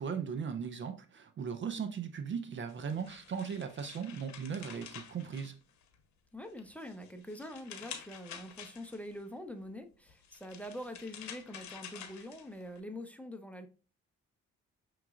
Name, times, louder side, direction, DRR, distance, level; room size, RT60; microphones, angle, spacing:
voice 1, 0.0-5.5, right 6 dB, 40° right, 0.5 m, -38 dB
sound 1, 2.7-6.0 6.5-9.2 10.1-12.8, left 8 dB, 70° left, 0.9 m, -49 dB
voice 2, 6.3-13.7, left 1 dB, 5° left, 0.6 m, -45 dB
5.8 x 3.1 x 2.3 m
cardioid pair, 75°, 30 cm